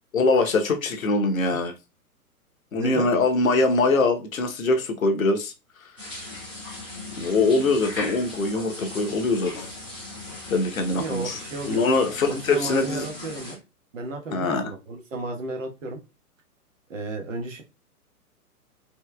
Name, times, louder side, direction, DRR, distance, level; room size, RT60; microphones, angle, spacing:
voice 1, 0.1-1.7 2.7-5.5 7.2-9.7 10.5-11.4 11.7-13.1 14.3-14.7, left 3 dB, 60° left, 6 dB, 0.9 m, -23 dB
voice 2, 2.7-3.1 10.9-11.8 12.3-13.6 13.9-16.0 16.9-17.6, right 2 dB, 55° right, 2 dB, 1.2 m, -33 dB
sound 1, 6.0-13.5, left 2 dB, 5° right, 0.4 m, -38 dB
4.7 x 2.9 x 2.2 m, 0.27 s
figure-of-eight pair, 115°, 46 cm